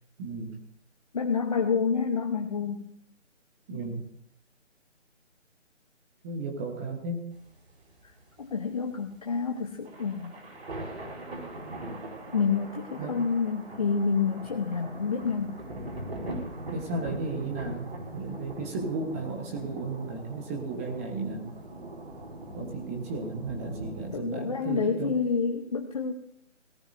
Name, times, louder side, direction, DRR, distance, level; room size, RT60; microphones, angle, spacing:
voice 1, 0.2-0.6 3.7-4.0 6.2-7.3 13.0-13.2 16.7-17.9 18.1-21.5 22.5-25.1, right 3 dB, 10° right, 2 dB, 1.1 m, -34 dB
voice 2, 1.1-2.9 8.4-10.3 12.3-15.6 24.1-26.1, left 5 dB, 30° left, 3 dB, 0.9 m, -28 dB
sound 1, 7.3-24.2, right 1 dB, 60° right, 5.3 m, -41 dB
18.0 x 17.5 x 2.6 m, 0.70 s
figure-of-eight pair, 155°, 37 cm